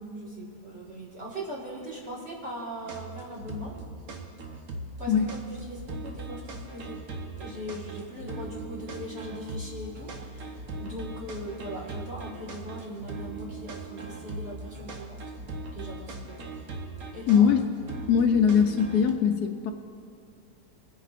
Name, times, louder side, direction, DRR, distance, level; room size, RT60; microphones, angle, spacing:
voice 1, 0.2-3.7 5.0-7.0 7.4-15.2 15.7-16.4 17.1-17.5, equal, 40° right, -6 dB, 2.0 m, -40 dB
sound 1, 2.9-19.1, right 3 dB, 65° right, 1.4 m, -39 dB
voice 2, 17.3-17.6 18.1-19.7, left 7 dB, 80° left, 4 dB, 1.1 m, -21 dB
25.0 x 9.9 x 2.5 m, 2.4 s
omnidirectional pair, 1.7 m